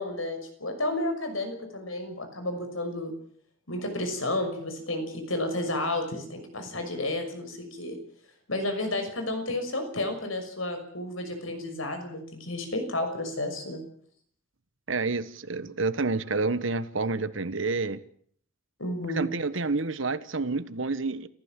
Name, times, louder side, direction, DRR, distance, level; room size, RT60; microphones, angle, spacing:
voice 1, 0.0-3.1 3.7-8.0 8.5-13.9 18.8-19.2, left 1 dB, 90° left, 6.3 m, -31 dB
voice 2, 14.9-18.0 19.1-21.3, right 3 dB, 70° right, 1.3 m, -29 dB
29.0 x 15.5 x 7.5 m
head